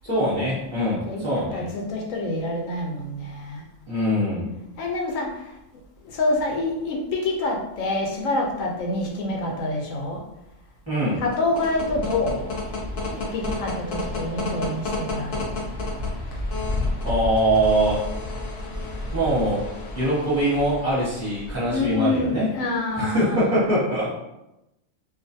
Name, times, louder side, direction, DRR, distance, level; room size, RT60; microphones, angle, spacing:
voice 1, 0.0-1.7 3.9-4.5 10.9-11.2 17.0-18.1 19.1-19.7 19.9-22.5 22.9-24.1, right 1 dB, 15° left, -9 dB, 0.7 m, -23 dB
voice 2, 0.9-3.6 4.8-5.5 6.0-10.2 11.2-12.5 13.0-15.5 21.7-23.5, left 2 dB, 80° left, 0 dB, 1.0 m, -27 dB
sound 1, 11.2-21.9, left 2 dB, 55° left, 0.6 m, -31 dB
2.4 x 2.4 x 2.6 m, 0.90 s
omnidirectional pair, 1.3 m